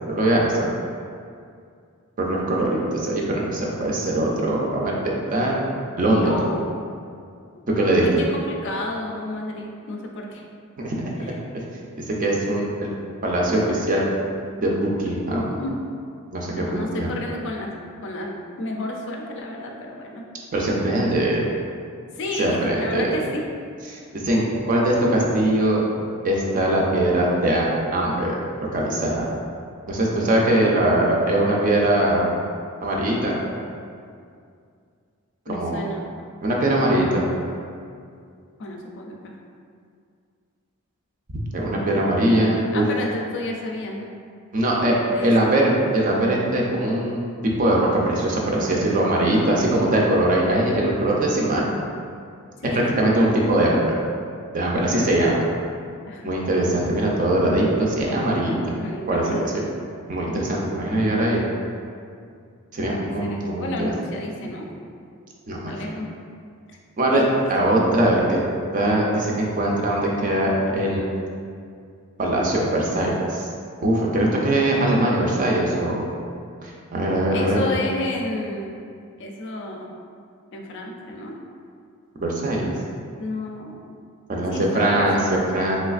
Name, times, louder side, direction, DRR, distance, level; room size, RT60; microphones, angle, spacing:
voice 1, 0.1-0.7 2.2-5.5 6.0-6.4 7.7-8.1 10.8-11.6 12.1-12.9 13.2-14.0 14.6-15.5 16.3-17.1 20.5-21.4 22.4-23.1 23.9-25.8 26.2-28.4 28.7-29.3 29.9-32.3 32.8-33.4 35.5-35.8 36.4-37.2 41.5-42.9 44.5-45.0 45.2-51.6 52.7-54.0 54.5-55.4 56.2-58.7 59.1-59.5 60.1-61.4 62.7-63.7 65.5-66.0 67.0-67.2 67.5-68.4 68.7-71.0 72.2-73.5 73.8-76.0 76.6-77.8 82.2-82.7 84.3-85.8, right 1 dB, 35° right, -2 dB, 0.4 m, -21 dB
voice 2, 6.2-6.8 7.5-7.6 8.0-10.4 11.2-11.3 15.0-15.1 15.6-15.8 16.6-20.2 22.2-23.4 35.5-36.1 36.8-37.3 38.6-39.3 42.7-44.1 44.7-45.5 49.9-50.3 52.6-53.0 56.1-56.3 58.8-59.5 63.0-64.7 65.7-66.1 66.7-66.8 67.1-67.3 67.6-67.7 77.3-78.8 79.2-79.9 80.5-81.4 83.2-84.0 84.5-85.4, left 2 dB, 55° left, 1 dB, 0.4 m, -32 dB
3.3 x 3.1 x 2.4 m, 2.3 s
head